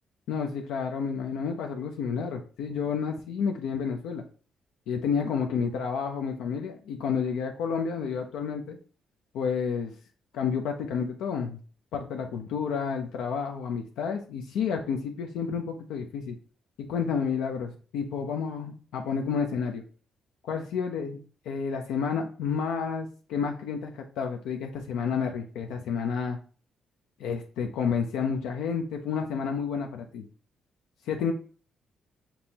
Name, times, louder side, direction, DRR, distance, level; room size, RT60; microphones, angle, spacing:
voice 1, 0.3-4.2 4.9-8.8 9.3-9.9 10.3-11.6 11.9-16.4 16.8-19.8 20.5-21.2 21.5-26.4 27.2-30.3 31.1-31.3, left 6 dB, 90° left, 3 dB, 0.5 m, -30 dB
5.2 x 3.0 x 2.8 m, 0.39 s
cardioid pair, 90°, 0 cm